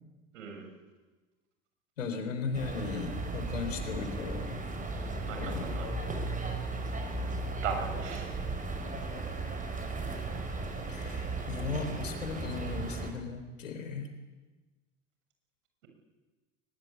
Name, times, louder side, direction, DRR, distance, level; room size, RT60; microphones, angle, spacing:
voice 1, 0.3-0.7 5.3-5.9 7.6-8.3, right 6 dB, 70° right, 4 dB, 7.0 m, -37 dB
voice 2, 2.0-4.6 5.3-5.8 10.9-14.1, left 4 dB, 80° left, 8 dB, 3.7 m, -37 dB
sound 1, 2.5-13.1, right 3 dB, 20° right, 5.8 m, -36 dB
22.5 x 21.0 x 8.5 m, 1.2 s
hypercardioid pair, 75°, 38 cm